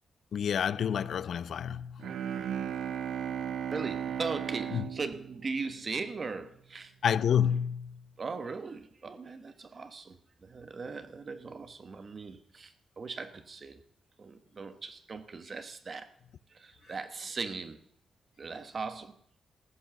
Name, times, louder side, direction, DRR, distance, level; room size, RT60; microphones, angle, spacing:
voice 1, 0.3-2.1 4.7-4.9 7.0-8.0, left 8 dB, 60° left, 0.5 m, -29 dB
Bowed string instrument, 2.0-6.3, right 8 dB, 80° right, 0.7 m, -36 dB
voice 2, 3.7-6.9 8.2-13.8 14.2-16.1 16.5-17.8 18.4-19.1, right 4 dB, 35° right, 1.0 m, -39 dB
15.0 x 8.6 x 6.9 m
wide cardioid pair, 160°, 0 cm